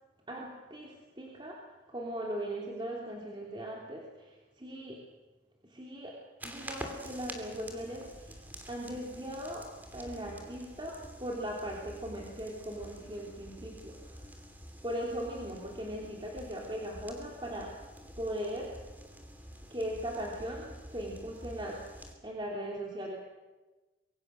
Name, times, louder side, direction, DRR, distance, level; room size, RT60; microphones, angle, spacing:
voice 1, 0.3-5.1 5.6-14.4 14.8-17.8 18.2-18.8 19.7-23.2, equal, 25° right, -2 dB, 3.1 m, -39 dB
sound 1, 6.4-22.2, equal, 10° right, 3.0 m, -48 dB
25.5 x 23.5 x 6.6 m, 1.2 s
head